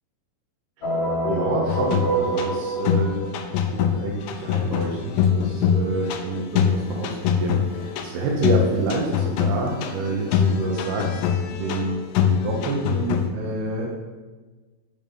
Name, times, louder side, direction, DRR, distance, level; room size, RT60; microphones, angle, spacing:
sound 1, 0.8-3.7, right 2 dB, 55° left, 2.5 m, -26 dB
voice 1, 1.3-3.2 3.7-11.2 11.6-13.9, right 3 dB, 80° right, -2 dB, 3.0 m, -28 dB
sound 2, 1.7-13.3, left 8 dB, 80° left, 2.0 m, -24 dB
sound 3, 4.3-10.7, left 4 dB, 30° right, 1.7 m, -43 dB
7.2 x 5.4 x 5.5 m, 1.3 s
omnidirectional pair, 4.5 m